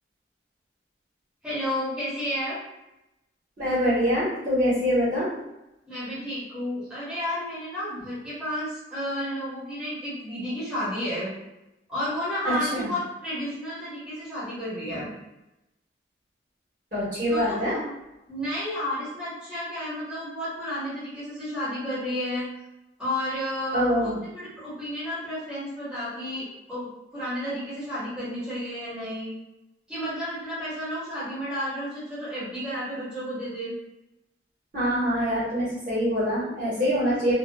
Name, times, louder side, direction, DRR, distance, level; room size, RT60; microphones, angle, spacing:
voice 1, 1.4-2.6 5.9-11.3 11.9-15.1 17.3-17.9 18.3-22.4 23.0-26.9 27.1-29.3 29.9-33.7, equal, 5° right, -12 dB, 1.0 m, -32 dB
voice 2, 3.6-5.3 12.4-12.9 14.9-15.0 16.9-17.7 23.7-24.2 34.7-37.3, equal, 45° right, -9 dB, 1.2 m, -24 dB
2.6 x 2.3 x 2.2 m, 0.92 s
head